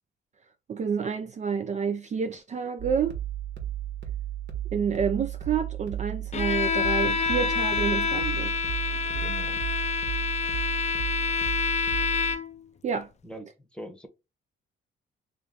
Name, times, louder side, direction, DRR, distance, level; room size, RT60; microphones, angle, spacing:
voice 1, 0.7-3.2 4.7-8.5 12.8-13.1, right 6 dB, 35° right, 0.4 m, -29 dB
sound 1, 2.8-12.3, right 12 dB, 60° right, 1.3 m, -34 dB
Bowed string instrument, 6.3-12.6, left 6 dB, 35° left, 0.4 m, -27 dB
voice 2, 9.1-9.6 13.2-14.1, equal, 5° left, 0.9 m, -42 dB
3.1 x 3.0 x 3.7 m
cardioid pair, 90°, 20 cm